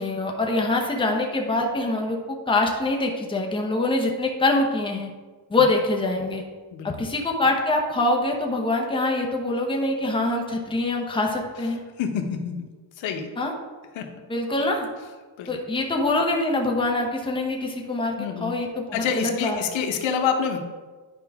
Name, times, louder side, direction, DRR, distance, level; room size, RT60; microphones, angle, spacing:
voice 1, 0.0-5.1 5.5-6.4 6.8-11.8 13.4-13.5 14.3-14.9 15.5-19.6, left 2 dB, 10° left, 1 dB, 0.9 m, -24 dB
voice 2, 12.0-12.5 13.0-13.3 13.9-14.0 15.4-15.5 18.2-18.5 18.9-20.6, left 7 dB, 90° left, 4 dB, 1.0 m, -26 dB
10.0 x 4.9 x 3.5 m, 1.4 s
cardioid pair, 145°, 45 cm